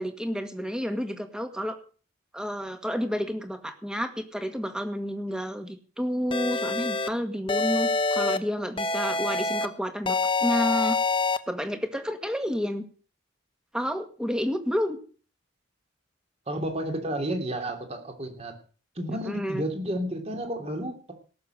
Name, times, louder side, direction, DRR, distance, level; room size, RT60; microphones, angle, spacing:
voice 1, 0.0-1.8 2.3-11.0 11.5-12.8 13.7-15.0 19.3-19.6, equal, 5° right, 7 dB, 1.8 m, -30 dB
sound 1, 6.3-7.1 7.5-8.4 8.8-9.7 10.1-11.4, left 3 dB, 25° left, 1.0 m, -26 dB
voice 2, 16.5-18.5 18.9-21.1, right 1 dB, 30° right, 4 dB, 3.0 m, -31 dB
18.0 x 6.9 x 8.0 m, 0.40 s
head